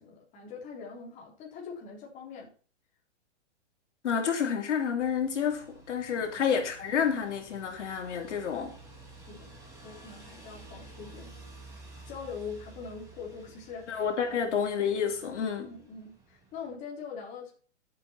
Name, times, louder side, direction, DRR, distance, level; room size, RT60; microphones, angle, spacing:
voice 1, 0.0-2.5 6.3-6.5 9.1-9.5 9.8-11.3 12.0-14.0 14.3-14.4 15.6-17.5, left 5 dB, 20° left, 3.8 m, -43 dB
voice 2, 4.0-8.8 13.9-15.7, left 7 dB, 80° left, 3.5 m, -29 dB
sound 1, 5.0-16.7, right 3 dB, 10° right, 3.4 m, -52 dB
12.0 x 8.4 x 4.4 m
hypercardioid pair, 165°, 35 cm